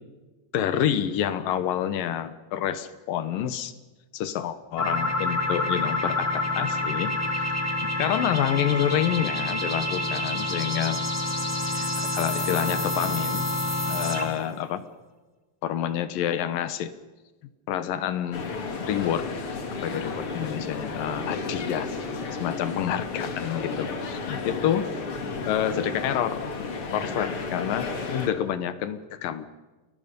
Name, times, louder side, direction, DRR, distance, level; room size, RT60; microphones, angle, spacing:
voice 1, 0.5-3.7 4.1-7.1 7.8-11.0 11.7-13.5 13.9-14.9 15.6-16.9 17.7-18.5 18.8-19.3 19.7-24.9 25.5-26.4 26.9-29.5, left 10 dB, 70° left, 12 dB, 2.7 m, -28 dB
sound 1, 4.8-14.5, left 2 dB, 5° left, 1.4 m, -28 dB
sound 2, 18.3-28.3, left 4 dB, 40° left, 2.7 m, -33 dB
29.5 x 21.5 x 5.3 m, 1.2 s
omnidirectional pair, 4.5 m